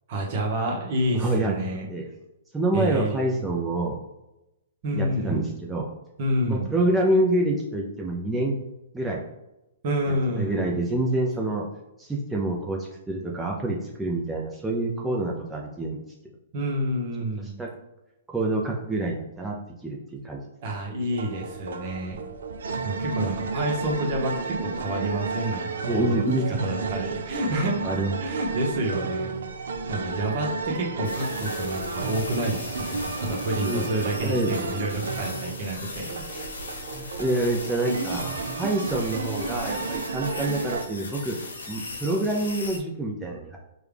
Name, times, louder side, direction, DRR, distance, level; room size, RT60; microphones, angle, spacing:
voice 1, 0.1-1.9 2.7-3.4 4.8-5.4 6.2-6.7 9.8-10.6 16.5-17.6 20.6-22.2 22.8-26.2 26.6-29.3 29.9-36.4 37.0-37.2, right 1 dB, 45° right, 0 dB, 1.1 m, -29 dB
voice 2, 1.1-1.5 1.9-2.0 2.5-4.0 4.9-5.9 6.5-8.6 8.9-9.2 10.4-11.7 12.0-16.0 17.4-17.7 18.3-19.5 19.8-20.4 25.9-26.6 27.8-28.1 32.9-33.0 33.6-33.8 34.2-34.5 36.9-38.2 38.6-41.4 41.7-43.6, right 1 dB, 10° right, -2 dB, 0.5 m, -27 dB
sound 1, 21.1-40.8, right 4 dB, 75° right, 0.4 m, -32 dB
sound 2, 31.0-42.8, left 3 dB, 85° left, 0.9 m, -38 dB
4.6 x 2.3 x 3.4 m, 0.93 s
hypercardioid pair, 125°, 0 cm